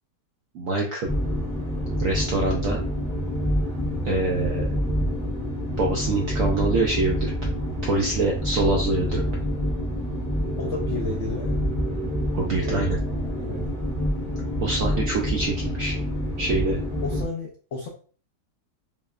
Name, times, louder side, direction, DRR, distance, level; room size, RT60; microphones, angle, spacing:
voice 1, 0.5-1.1 2.0-2.8 4.0-4.8 5.8-7.3 7.8-9.2 12.3-13.0 14.6-15.9 16.4-16.8, right 2 dB, 75° right, 0 dB, 0.7 m, -25 dB
sound 1, 1.0-17.2, equal, 5° left, 0.6 m, -27 dB
voice 2, 10.6-11.6 12.6-12.9 13.4-13.7 17.0-17.9, left 3 dB, 75° left, -3 dB, 0.6 m, -32 dB
5.5 x 2.1 x 2.3 m, 0.42 s
omnidirectional pair, 2.0 m